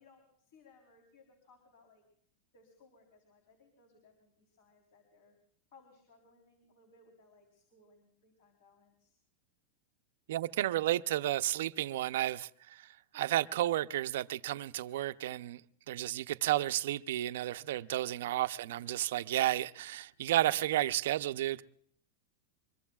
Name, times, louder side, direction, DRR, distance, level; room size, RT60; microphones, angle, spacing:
voice 1, 0.0-2.0 2.5-5.4 5.7-9.2 18.2-18.7, left 3 dB, 55° left, 3.6 m, -64 dB
voice 2, 10.3-15.6 15.9-21.6, right 13 dB, 65° right, 0.5 m, -32 dB
24.0 x 22.5 x 2.4 m
supercardioid pair, 170°, 0 cm